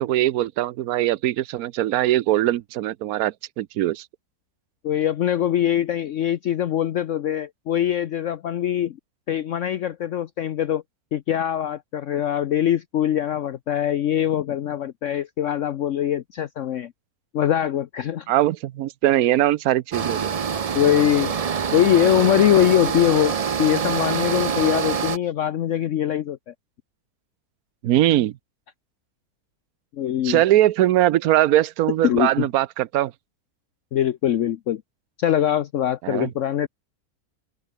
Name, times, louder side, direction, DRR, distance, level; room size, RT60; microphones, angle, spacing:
voice 1, 0.0-4.1 18.3-20.3 27.8-28.4 30.2-33.1 36.0-36.3, right 14 dB, 75° right, 1.1 m, -21 dB
voice 2, 4.8-9.0 9.3-10.8 11.1-16.9 17.3-18.3 20.7-21.3 21.7-26.5 29.9-30.4 32.0-32.5 33.9-34.8 35.2-36.7, left 11 dB, 60° left, 1.0 m, -22 dB
sound 1, 19.9-25.2, right 6 dB, 60° right, 0.4 m, -25 dB
open air
omnidirectional pair, 1.6 m